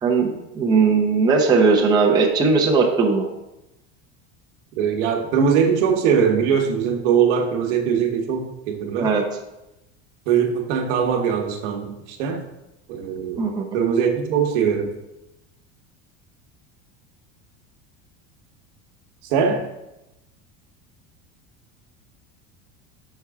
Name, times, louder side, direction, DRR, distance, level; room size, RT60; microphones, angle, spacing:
voice 1, 0.0-3.3 9.0-9.3 13.4-13.8, right 4 dB, 10° right, -2 dB, 0.7 m, -18 dB
voice 2, 4.8-9.1 10.3-12.4 12.9-13.4 13.7-14.9 19.3-19.7, right 7 dB, 80° right, 4 dB, 1.0 m, -21 dB
6.8 x 4.6 x 3.5 m, 0.92 s
cardioid pair, 155°, 35 cm